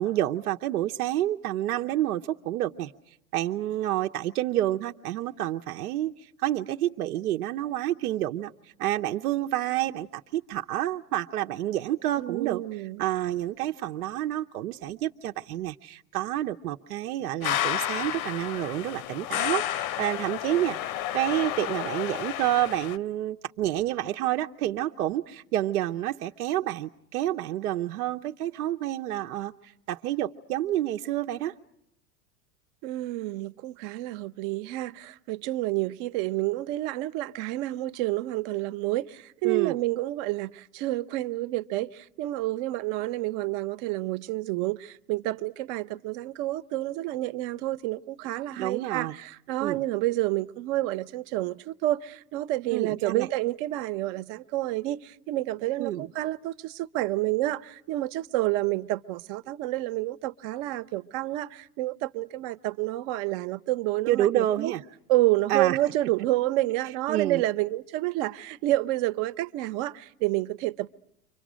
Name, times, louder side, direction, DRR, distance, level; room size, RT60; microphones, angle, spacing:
voice 1, 0.0-2.9 3.3-8.5 8.8-12.6 13.0-20.8 21.1-31.5 39.4-39.7 48.5-49.1 49.6-49.8 52.7-53.3 55.8-56.1 64.1-64.8 65.5-65.8 67.1-67.4, right 13 dB, 85° right, 0.9 m, -29 dB
voice 2, 12.2-13.0 32.8-64.7 65.1-70.9, right 17 dB, 50° right, 1.0 m, -29 dB
sound 1, 17.4-23.0, left 12 dB, 70° left, 0.9 m, -31 dB
30.0 x 25.0 x 6.3 m
hypercardioid pair, 115°, 44 cm